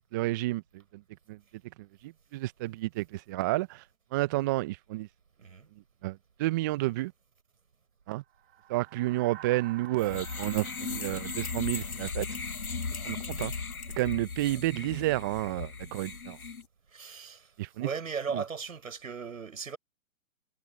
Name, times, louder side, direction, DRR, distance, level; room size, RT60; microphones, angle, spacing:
voice 1, 0.1-0.6 0.9-1.0 1.3-1.4 2.0-3.8 4.1-5.1 6.0-7.1 8.1-8.2 8.7-12.3 13.0-13.5 14.0-16.4 17.6-17.9 18.3-18.4, right 18 dB, 15° right, 0.5 m, -30 dB
sound 1, 8.3-12.9, right 12 dB, 45° right, 2.9 m, -51 dB
sound 2, 10.0-16.6, left 4 dB, 85° left, 1.6 m, -37 dB
voice 2, 16.9-19.8, right 6 dB, 70° right, 6.2 m, -37 dB
figure-of-eight pair, 130°, 42 cm